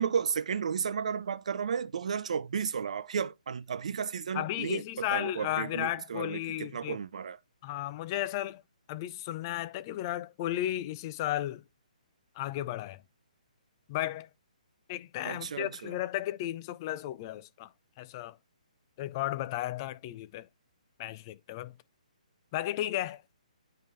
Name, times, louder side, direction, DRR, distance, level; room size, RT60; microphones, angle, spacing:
voice 1, 0.0-7.4 15.2-15.9, right 7 dB, 60° right, 0.6 m, -33 dB
voice 2, 4.3-7.0 7.6-8.6 8.9-11.6 12.4-13.0 13.9-14.3 14.9-17.7 18.0-18.4 19.0-20.5 21.0-21.8 22.5-23.2, left 14 dB, 30° left, 0.4 m, -34 dB
9.2 x 3.7 x 3.2 m
figure-of-eight pair, 135°, 4 cm